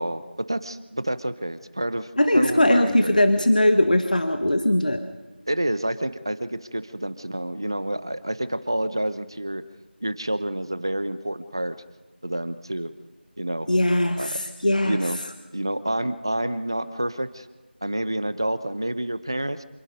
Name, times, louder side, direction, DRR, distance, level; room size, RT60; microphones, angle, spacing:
voice 1, 0.0-3.2 5.5-9.6 10.0-11.8 12.2-12.9 13.4-13.7 14.2-14.4 14.6-15.2 15.5-17.5 17.8-19.6, right 1 dB, 25° right, 14 dB, 0.7 m, -28 dB
voice 2, 2.2-5.0 13.7-15.0, left 1 dB, 45° left, 8 dB, 1.4 m, -20 dB
27.0 x 21.0 x 5.3 m, 1.2 s
figure-of-eight pair, 175°, 6 cm